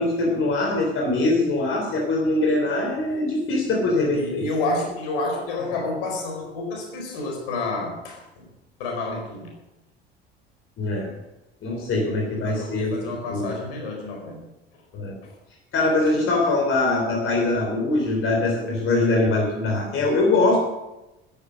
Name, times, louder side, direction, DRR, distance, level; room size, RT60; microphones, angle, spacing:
voice 1, 0.0-4.5 10.8-11.1 11.6-13.5 14.9-15.1 15.7-20.6, left 2 dB, 45° left, 0 dB, 3.5 m, -22 dB
voice 2, 4.1-8.2 8.8-9.5 12.4-14.4, left 2 dB, 65° left, 1 dB, 4.7 m, -29 dB
13.0 x 11.0 x 6.4 m, 0.97 s
figure-of-eight pair, 60°, 30 cm